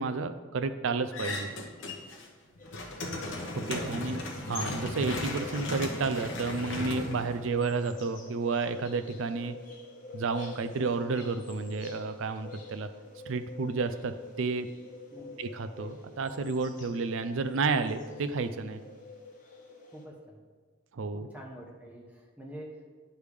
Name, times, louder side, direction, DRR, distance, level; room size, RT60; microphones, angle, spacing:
voice 1, 0.0-1.5 3.6-4.2 4.5-9.6 10.1-12.9 13.3-14.7 15.4-18.8 20.9-21.3, right 4 dB, 60° right, 10 dB, 0.4 m, -31 dB
sound 1, 1.1-2.3 2.6-7.9, left 2 dB, 60° left, 0.9 m, -36 dB
sound 2, 2.6-20.1, left 3 dB, 35° left, 1.1 m, -47 dB
voice 2, 19.9-20.4 21.1-22.9, equal, 5° right, -1 dB, 0.9 m, -46 dB
10.0 x 3.5 x 4.9 m, 1.4 s
head